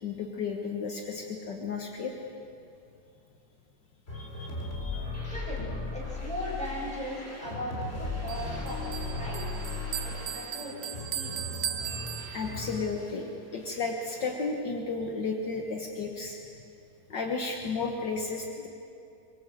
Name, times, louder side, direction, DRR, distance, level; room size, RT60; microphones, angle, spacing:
voice 1, 0.0-2.1 4.1-5.0 12.3-16.4 17.1-18.7, left 4 dB, 65° left, 2 dB, 2.0 m, -33 dB
sound 1, 4.1-13.2 13.5-14.4, left 2 dB, 30° left, 4.3 m, -37 dB
voice 2, 5.3-9.5 10.0-11.7, equal, 5° left, -5 dB, 6.9 m, -38 dB
Bell, 8.3-12.8, right 10 dB, 60° right, 1.0 m, -38 dB
23.5 x 21.5 x 7.7 m, 2.6 s
omnidirectional pair, 2.1 m